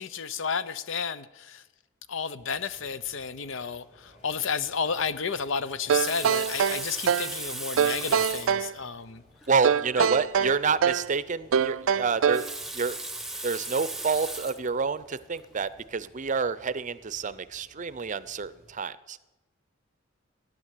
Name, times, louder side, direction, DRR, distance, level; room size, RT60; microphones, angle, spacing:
voice 1, 0.0-1.6 2.1-9.2 10.0-10.1, left 6 dB, 70° left, 14 dB, 0.8 m, -32 dB
sound 1, 2.4-18.8, left 1 dB, 40° left, 4.8 m, -58 dB
Water tap faucet, 5.7-8.6 9.4-9.5 9.8-9.9 12.1-14.7 15.4-15.6, right 2 dB, ahead, 1.0 m, -37 dB
sound 2, 5.9-7.4 7.8-8.7 9.6-11.1 11.5-12.5, right 7 dB, 80° right, 0.4 m, -24 dB
voice 2, 9.5-13.0 13.4-19.2, right 5 dB, 40° right, 16 dB, 0.6 m, -28 dB
15.5 x 10.0 x 8.3 m, 1.0 s
head